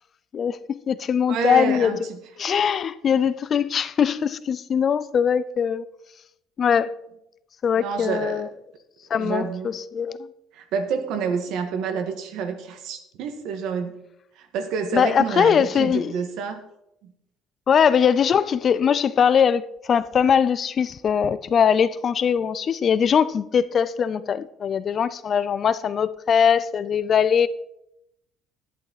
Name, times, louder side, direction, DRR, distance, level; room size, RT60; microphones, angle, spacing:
voice 1, 0.3-2.0 2.4-5.8 6.6-6.9 7.6-8.5 9.1-10.3 14.9-16.1 17.7-27.5, left 7 dB, 40° left, 0.5 m, -21 dB
voice 2, 1.3-2.2 7.7-8.4 9.2-9.7 10.5-14.0 14.3-16.6 17.0-17.1, right 5 dB, 70° right, 1.7 m, -28 dB
11.5 x 11.0 x 4.1 m
cardioid pair, 130°, 0 cm